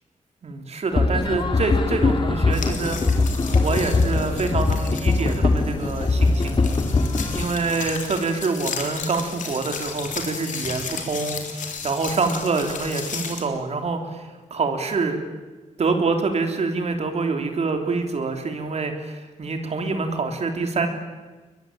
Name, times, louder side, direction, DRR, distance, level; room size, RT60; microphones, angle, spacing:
voice 1, 0.4-3.0 3.5-11.4 11.8-15.2 15.8-20.9, right 4 dB, 55° right, 5 dB, 3.3 m, -26 dB
sound 1, 0.9-7.5, left 3 dB, 40° left, 2.5 m, -21 dB
sound 2, 2.5-13.4, left 6 dB, 80° left, 3.7 m, -34 dB
22.5 x 22.0 x 9.1 m, 1.2 s
cardioid pair, 95°, 13 cm